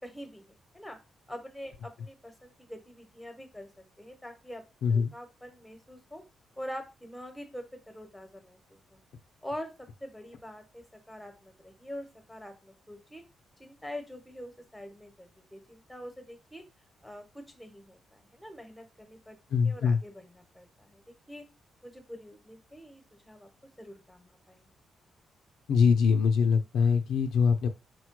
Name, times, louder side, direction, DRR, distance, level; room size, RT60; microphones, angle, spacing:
voice 1, 0.0-1.0 1.3-3.7 4.0-4.6 4.9-6.2 6.6-9.0 9.4-9.7 10.0-13.2 13.6-16.6 17.0-19.4 19.6-21.0 21.3-21.4 21.8-23.5 23.8-24.7, equal, 5° left, 5 dB, 1.1 m, -44 dB
voice 2, 4.8-5.1 19.5-20.0 25.7-27.7, left 6 dB, 80° left, 7 dB, 0.5 m, -23 dB
4.3 x 2.2 x 4.6 m, 0.27 s
cardioid pair, 100°, 0 cm